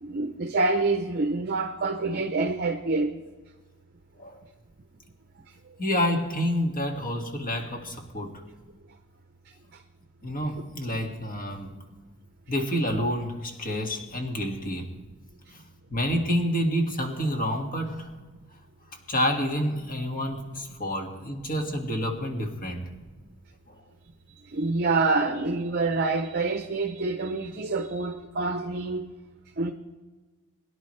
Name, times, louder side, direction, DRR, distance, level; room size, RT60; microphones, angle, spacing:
voice 1, 0.0-3.2 24.5-29.1 29.6-29.7, right 3 dB, 45° right, 0.7 m, -26 dB
voice 2, 5.8-8.4 10.2-11.7 12.5-14.9 15.5-15.6 15.9-18.1 19.1-22.8 23.7-23.8, equal, 40° left, 1.9 m, -28 dB
22.5 x 10.5 x 3.2 m
head